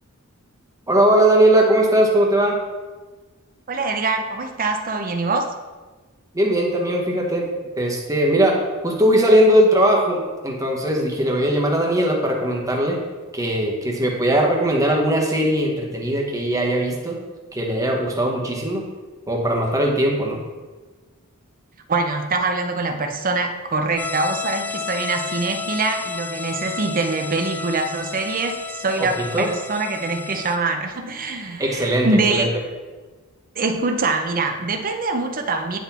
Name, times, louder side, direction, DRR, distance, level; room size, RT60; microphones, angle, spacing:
voice 1, 0.9-2.6 6.3-7.5 7.8-8.6 8.8-13.0 13.3-17.2 17.5-18.9 19.3-20.4 29.0-29.5 31.6-32.5, right 1 dB, 15° right, 0 dB, 1.1 m, -19 dB
voice 2, 3.7-5.5 21.9-32.5 33.6-35.8, right 3 dB, 40° right, 5 dB, 0.6 m, -24 dB
sound 1, 24.0-30.6, left 5 dB, 10° left, 0.3 m, -31 dB
9.5 x 4.1 x 4.2 m, 1.3 s
head